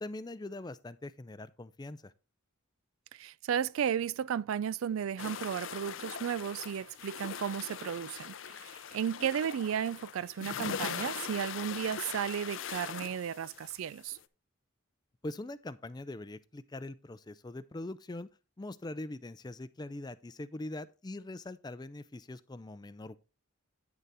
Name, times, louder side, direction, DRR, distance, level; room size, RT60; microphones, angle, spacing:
voice 1, 0.0-2.1 15.2-18.3 18.6-23.2, left 2 dB, 20° left, 0.4 m, -42 dB
voice 2, 3.1-14.2, right 8 dB, 85° right, 0.4 m, -34 dB
sound 1, 5.2-14.2, left 7 dB, 70° left, 0.5 m, -41 dB
9.4 x 6.7 x 3.5 m
head